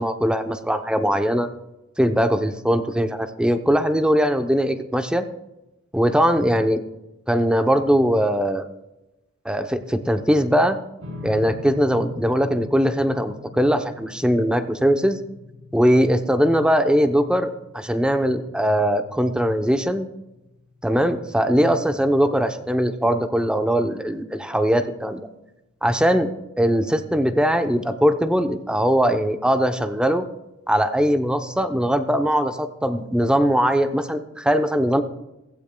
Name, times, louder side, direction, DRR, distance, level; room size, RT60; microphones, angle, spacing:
voice 1, 0.0-1.5 2.0-5.2 5.9-6.8 7.3-8.7 9.4-10.8 11.2-15.2 15.7-20.1 20.8-25.3 25.8-26.3 26.6-30.2 30.7-35.0, equal, 5° right, 7 dB, 0.7 m, -20 dB
sound 1, 11.0-23.5, left 3 dB, 70° right, 3.5 m, -43 dB
16.5 x 16.0 x 2.3 m, 0.96 s
head